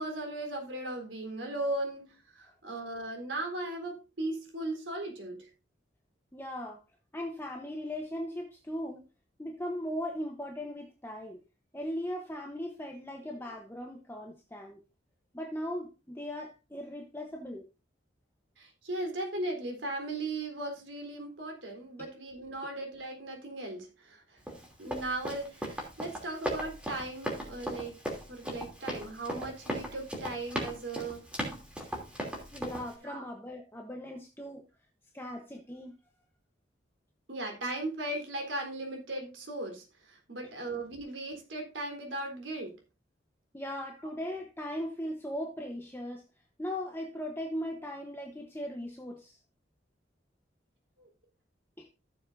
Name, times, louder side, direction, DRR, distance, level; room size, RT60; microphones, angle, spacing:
voice 1, 0.0-2.1 2.4-5.5 18.6-24.4 24.8-28.0 28.3-31.2 33.0-33.2 37.3-42.7 51.0-51.1, right 2 dB, 85° right, 3.7 m, -37 dB
voice 2, 6.3-6.8 7.1-9.1 9.4-11.4 11.7-14.8 15.3-17.7 22.0-22.1 32.5-34.6 35.1-35.9 43.5-46.2 46.6-49.4 51.8-51.9, equal, 10° left, 0.9 m, -38 dB
Run, 24.5-32.9, equal, 5° right, 2.9 m, -37 dB
15.0 x 7.2 x 2.6 m
head